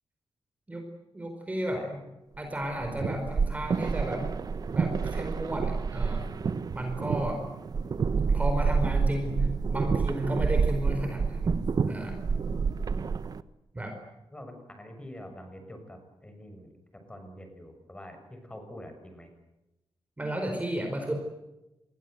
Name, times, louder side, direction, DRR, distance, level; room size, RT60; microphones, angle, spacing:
voice 1, 1.1-2.0 2.4-4.3 4.7-6.2 6.7-7.4 8.3-12.2 13.7-13.9 20.2-21.2, right 1 dB, 15° right, 4 dB, 4.5 m, -33 dB
sound 1, 2.6-13.4, right 5 dB, 45° right, 1.1 m, -28 dB
voice 2, 14.3-16.7 17.1-19.3, equal, 10° left, 6 dB, 6.5 m, -45 dB
28.5 x 22.0 x 8.1 m, 0.97 s
wide cardioid pair, 160°, 9 cm